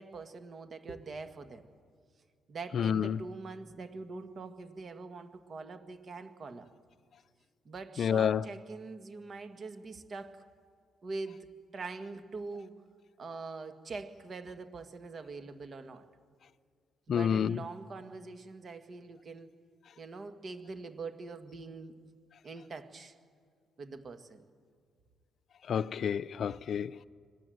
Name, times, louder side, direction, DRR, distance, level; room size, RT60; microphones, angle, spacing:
voice 1, 0.0-1.6 2.5-6.7 7.7-10.4 11.0-11.5 11.7-12.8 13.2-16.1 17.1-19.5 20.0-21.9 22.4-23.1 23.8-24.4, right 3 dB, 45° right, 1.8 m, -43 dB
voice 2, 2.7-3.2 8.0-8.4 17.1-17.6 25.7-27.0, left 8 dB, 60° left, 0.5 m, -29 dB
25.5 x 17.0 x 7.9 m
cardioid pair, 90°, 0 cm